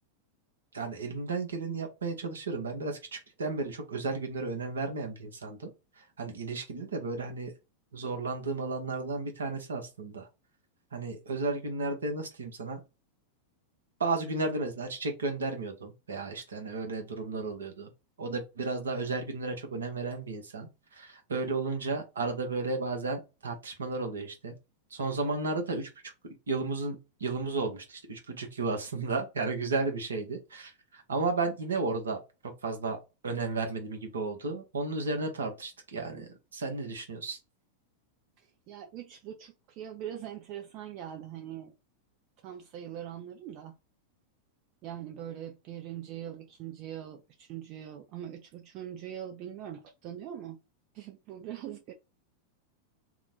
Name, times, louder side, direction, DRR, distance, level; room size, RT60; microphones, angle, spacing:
voice 1, 0.7-5.7 6.0-7.5 7.9-10.3 10.9-12.8 14.0-17.9 18.2-24.5 24.9-33.0 33.2-37.4, right 3 dB, 70° right, 0.8 m, -33 dB
voice 2, 38.4-41.7 42.4-43.7 44.8-50.6 50.9-51.9, right 10 dB, 40° right, 0.4 m, -42 dB
2.8 x 2.1 x 3.9 m
figure-of-eight pair, 90°, 0 cm